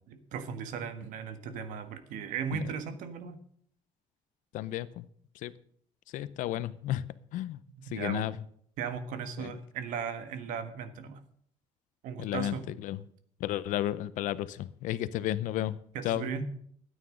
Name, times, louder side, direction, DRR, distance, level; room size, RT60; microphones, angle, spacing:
voice 1, 0.1-3.4 7.7-8.3 8.8-11.2 12.0-12.7 15.9-16.4, right 7 dB, 80° right, 1.5 m, -37 dB
voice 2, 4.5-5.0 5.4-5.5 6.1-7.0 7.3-7.6 7.9-8.3 9.4-9.5 12.2-12.6 12.8-13.0 13.4-15.8 16.0-16.2, left 13 dB, 75° left, 0.7 m, -32 dB
13.5 x 9.3 x 6.2 m
cardioid pair, 170°, 13 cm